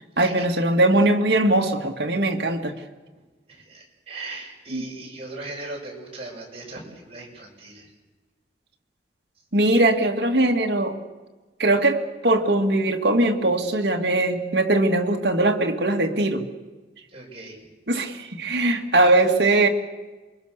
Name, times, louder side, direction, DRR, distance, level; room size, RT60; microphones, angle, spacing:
voice 1, 0.2-2.7 4.7-4.8 9.5-11.0 11.6-16.4 17.9-19.7, right 2 dB, 65° right, 2 dB, 2.3 m, -20 dB
voice 2, 3.5-7.9 17.1-17.7, right 2 dB, 35° right, -1 dB, 6.7 m, -38 dB
27.5 x 23.5 x 6.8 m, 1.2 s
head